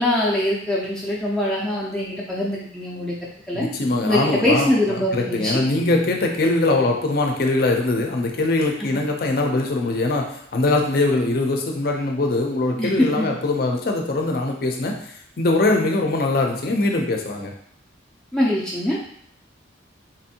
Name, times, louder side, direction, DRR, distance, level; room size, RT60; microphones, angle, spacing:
voice 1, 0.0-3.2 3.5-3.7 4.1-5.6 8.8-8.9 12.8-13.3 18.3-19.0, left 1 dB, 5° left, -6 dB, 0.5 m, -23 dB
voice 2, 3.5-15.1 15.4-17.5, left 2 dB, 50° left, 2 dB, 0.5 m, -22 dB
4.0 x 2.6 x 2.8 m, 0.69 s
head